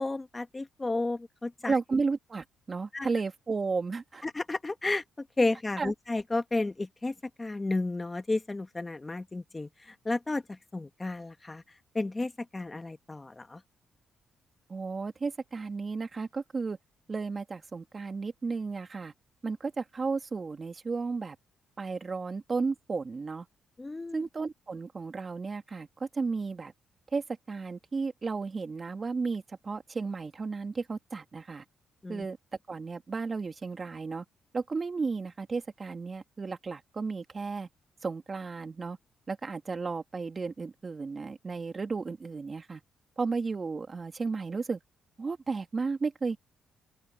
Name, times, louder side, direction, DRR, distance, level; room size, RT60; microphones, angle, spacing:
voice 1, 0.0-1.8 2.9-3.1 4.2-11.6 11.9-13.6 23.8-24.2 32.0-32.3, left 2 dB, 20° left, 1.4 m, -32 dB
voice 2, 1.6-4.2 5.8-5.9 14.7-16.8 17.1-19.1 19.4-21.4 21.8-23.5 24.1-26.7 27.1-31.6 32.1-32.4 32.7-34.2 34.5-37.7 38.0-39.0 39.3-42.8 43.2-44.8 45.2-46.4, right 4 dB, 35° right, 2.9 m, -33 dB
open air
cardioid pair, 90°, 0 cm